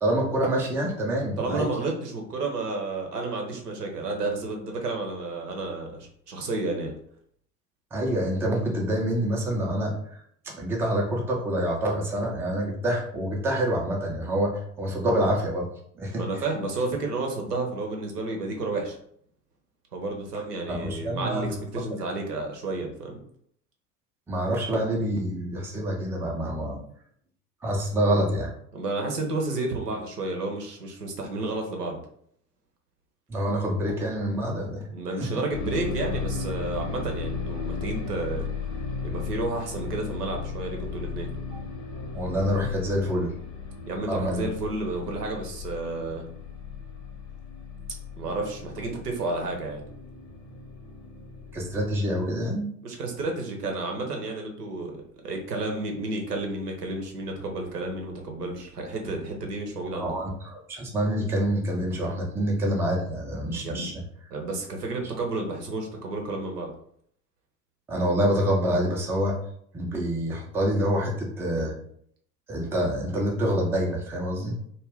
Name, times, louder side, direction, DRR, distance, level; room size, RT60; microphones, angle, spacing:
voice 1, 0.0-1.7 7.9-9.9 10.4-15.7 16.0-16.4 20.7-21.6 24.3-26.8 27.6-28.5 33.3-34.8 35.2-35.3 42.1-43.3 44.0-44.5 51.5-52.7 59.9-63.9 67.9-69.4 69.7-71.7 72.5-74.6, right 1 dB, 5° right, -1 dB, 0.4 m, -26 dB
voice 2, 1.4-5.9 6.3-6.9 16.2-19.0 19.9-23.2 28.7-32.0 34.9-38.4 39.0-41.3 43.9-46.2 48.2-49.8 52.8-60.1 63.6-63.9 64.3-66.7, right 2 dB, 85° right, 2 dB, 0.7 m, -31 dB
sound 1, 35.5-52.5, left 5 dB, 60° left, 0.8 m, -36 dB
2.3 x 2.1 x 3.4 m, 0.66 s
figure-of-eight pair, 70°, 46 cm